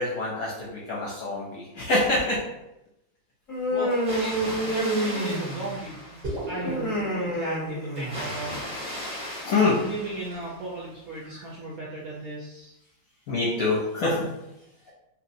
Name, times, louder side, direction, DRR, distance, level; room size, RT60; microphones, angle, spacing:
voice 1, 0.0-2.4 9.4-9.8 11.3-11.4 13.3-14.3, left 3 dB, 65° left, -5 dB, 0.9 m, -25 dB
Human voice, 3.5-5.7 6.6-8.5, equal, 30° left, 0.6 m, -28 dB
voice 2, 3.7-6.2 6.5-8.6 9.8-12.7, right 2 dB, 70° right, -5 dB, 0.8 m, -35 dB
Water, 3.9-6.7 7.9-10.8, left 1 dB, 5° right, 0.7 m, -37 dB
sound 1, 6.2-10.6, right 1 dB, 40° right, 0.6 m, -40 dB
3.1 x 2.8 x 2.6 m, 0.89 s
omnidirectional pair, 2.1 m